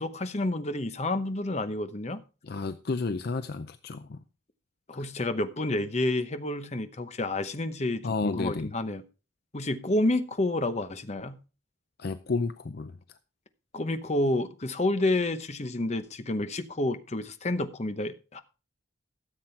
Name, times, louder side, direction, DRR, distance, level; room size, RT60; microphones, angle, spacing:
voice 1, 0.0-2.2 4.9-9.0 9.5-11.4 13.7-18.4, left 2 dB, 35° left, 0.9 m, -29 dB
voice 2, 2.4-4.2 4.9-5.0 8.0-8.7 12.0-13.0, left 3 dB, 55° left, 0.5 m, -31 dB
13.5 x 7.5 x 4.5 m
head